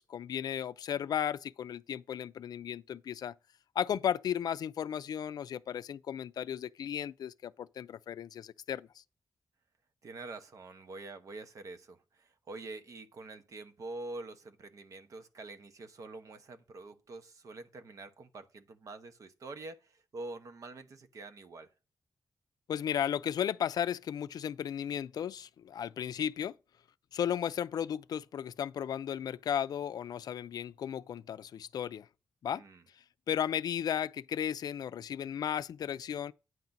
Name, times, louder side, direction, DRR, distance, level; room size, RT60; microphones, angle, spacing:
voice 1, 0.0-3.3 3.8-8.9 22.7-26.5 27.1-32.1 32.4-32.6 33.3-36.3, left 9 dB, 75° left, 0.4 m, -35 dB
voice 2, 10.0-21.7 32.5-32.8, right 2 dB, 55° right, 1.0 m, -46 dB
9.4 x 3.9 x 5.8 m
wide cardioid pair, 145°, 7 cm